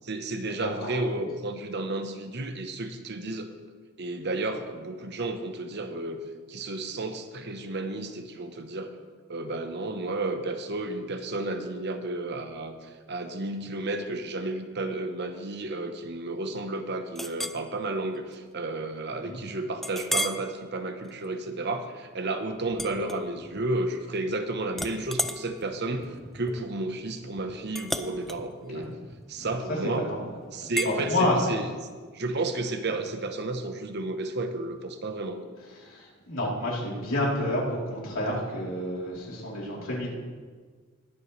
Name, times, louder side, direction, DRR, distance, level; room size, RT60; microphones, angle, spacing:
voice 1, 0.0-3.5 4.0-6.2 6.5-8.9 9.3-26.1 26.3-28.9 29.3-30.1 30.5-31.6 32.1-35.4, right 2 dB, 55° right, 7 dB, 1.0 m, -32 dB
voice 2, 0.6-1.0 19.2-19.4 28.7-28.9 29.4-30.2 30.8-31.6 35.8-40.1, left 1 dB, 85° left, -5 dB, 3.5 m, -29 dB
Chink clink, 17.2-17.6 18.2-18.3 18.8-18.9 19.8-20.5 21.0-21.3 22.7-23.7 24.0-24.4 24.7-29.8 30.8-31.0, equal, ahead, 0.4 m, -34 dB
21.0 x 8.0 x 3.3 m, 1.5 s
head